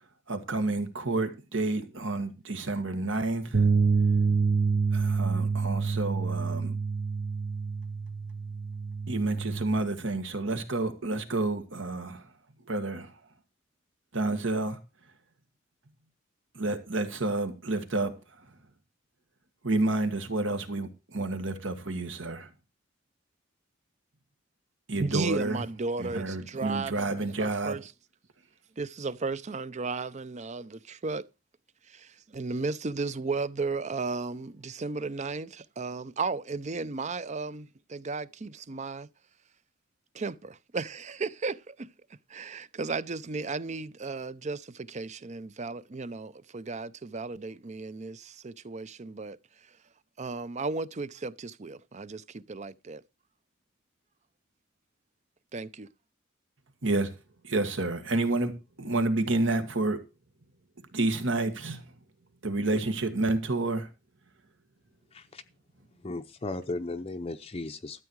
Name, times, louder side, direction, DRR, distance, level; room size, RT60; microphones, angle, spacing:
voice 1, 0.3-3.7 4.9-6.8 9.1-12.3 12.7-13.2 14.1-14.8 16.5-18.5 19.6-22.5 24.9-25.6 26.0-27.8 56.8-57.1 57.4-58.5 58.8-60.0 60.9-61.9 62.4-63.9, right 2 dB, 75° right, 2.0 m, -29 dB
sound 1, 3.5-9.8, right 4 dB, 55° right, 1.0 m, -27 dB
voice 2, 25.0-27.1 27.4-27.9 28.8-31.3 31.9-39.1 40.1-41.9 42.3-49.8 50.2-53.0 55.5-55.9, right 4 dB, 35° right, 0.6 m, -35 dB
voice 3, 65.1-65.4 66.0-68.0, left 2 dB, 30° left, 0.6 m, -36 dB
13.0 x 7.9 x 4.7 m
head